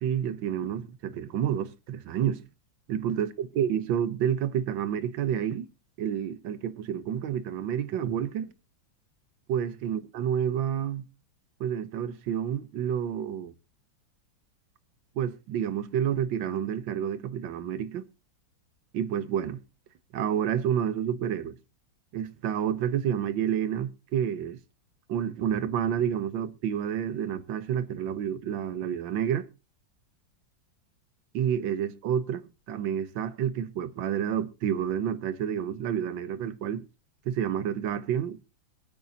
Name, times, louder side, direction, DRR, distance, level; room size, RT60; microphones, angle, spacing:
voice 1, 0.0-2.4 2.9-5.7 6.0-8.5 9.5-11.0 11.6-13.5 15.1-18.0 18.9-19.6 20.1-21.6 22.1-24.6 25.1-29.5 31.3-36.9 37.2-38.4, right 9 dB, 75° right, 1.6 m, -29 dB
22.0 x 9.4 x 2.8 m
omnidirectional pair, 2.1 m